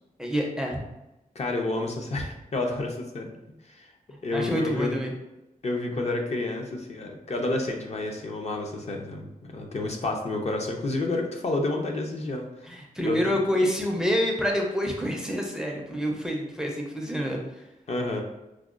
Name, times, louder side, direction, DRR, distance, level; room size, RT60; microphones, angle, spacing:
voice 1, 0.2-0.8 4.3-5.1 12.6-17.6, equal, 5° right, -1 dB, 0.4 m, -27 dB
voice 2, 1.4-3.3 3.7-3.9 4.2-4.9 5.6-12.5 13.0-13.2 17.9-18.2, left 2 dB, 50° left, 1 dB, 0.5 m, -29 dB
4.7 x 2.1 x 2.4 m, 0.96 s
wide cardioid pair, 155°, 14 cm